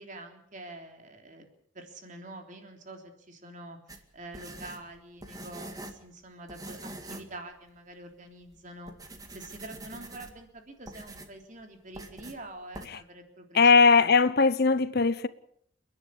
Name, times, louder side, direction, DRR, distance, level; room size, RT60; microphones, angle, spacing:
voice 1, 0.0-1.5 1.7-13.7 14.0-14.2, right 2 dB, 40° right, 3.6 m, -46 dB
sound 1, 3.9-6.1 6.5-7.4 7.7-7.8 8.4-8.6 8.9-10.5 10.9-11.4 11.9-12.4 12.7-12.9, right 1 dB, 20° right, 2.0 m, -44 dB
voice 2, 13.5-15.3, left 4 dB, 50° left, 0.8 m, -20 dB
30.0 x 10.5 x 8.6 m
head